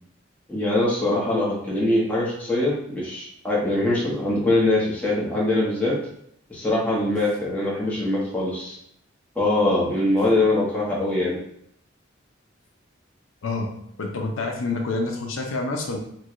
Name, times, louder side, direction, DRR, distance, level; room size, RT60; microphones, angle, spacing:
voice 1, 0.5-6.0 6.5-8.8 9.4-11.3, left 2 dB, 10° left, -6 dB, 0.8 m, -23 dB
voice 2, 14.0-16.0, left 3 dB, 80° left, 2 dB, 0.5 m, -27 dB
4.5 x 2.2 x 2.4 m, 0.72 s
head